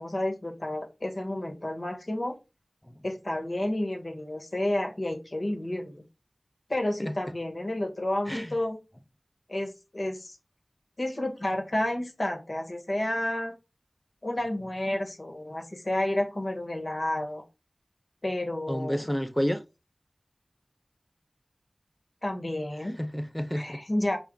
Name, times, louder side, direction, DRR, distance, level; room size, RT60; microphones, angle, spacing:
voice 1, 0.0-2.4 3.0-5.9 6.7-8.8 9.5-10.4 11.0-13.5 14.2-17.4 18.2-19.0 22.2-23.0 23.5-24.2, left 1 dB, 55° left, 1.4 m, -30 dB
voice 2, 18.7-19.6 23.0-23.8, equal, 10° left, 0.5 m, -30 dB
5.4 x 2.4 x 3.7 m
wide cardioid pair, 50°, 0 cm